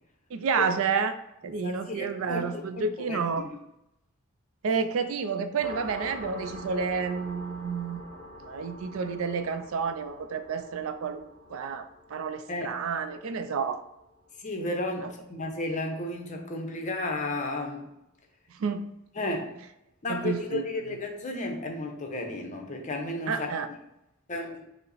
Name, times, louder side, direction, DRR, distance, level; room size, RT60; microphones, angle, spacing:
voice 1, 0.3-1.2 1.4-3.5 4.6-8.0 8.5-13.8 15.0-15.1 18.6-18.9 20.1-20.6 23.3-23.7, right 5 dB, 65° right, 10 dB, 0.4 m, -30 dB
voice 2, 1.6-3.5 12.5-12.7 14.4-17.9 19.2-19.5 20.0-23.5 24.3-24.6, left 2 dB, 35° left, 3 dB, 0.6 m, -33 dB
sound 1, 5.6-14.9, equal, 15° left, 1.1 m, -45 dB
5.4 x 2.1 x 3.9 m, 0.85 s
head